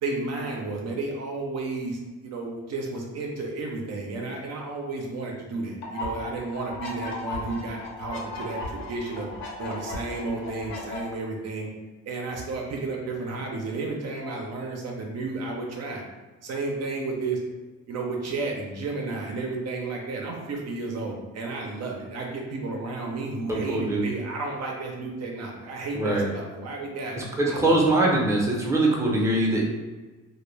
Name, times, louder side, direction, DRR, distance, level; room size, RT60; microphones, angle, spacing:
voice 1, 0.0-9.3 9.6-11.7 12.1-16.0 16.4-17.4 17.9-27.8, right 3 dB, 60° right, 0 dB, 0.5 m, -32 dB
sound 1, 5.8-11.0, left 3 dB, 65° left, 0.7 m, -36 dB
voice 2, 23.5-24.1 25.9-26.3 27.1-29.6, right 2 dB, 10° right, -3 dB, 0.6 m, -23 dB
2.1 x 2.1 x 3.1 m, 1.2 s
cardioid pair, 90°, 30 cm